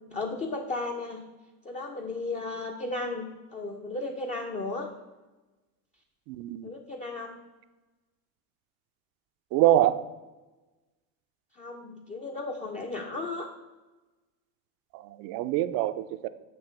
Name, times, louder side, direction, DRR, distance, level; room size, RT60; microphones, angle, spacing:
voice 1, 0.1-1.2 1.6-4.9 6.6-7.4 11.6-13.5, left 2 dB, 20° left, 1 dB, 0.4 m, -35 dB
voice 2, 6.3-6.7 9.5-10.0 14.9-16.3, right 13 dB, 55° right, 13 dB, 0.5 m, -25 dB
7.8 x 2.8 x 5.6 m, 1.2 s
supercardioid pair, 110°, 43 cm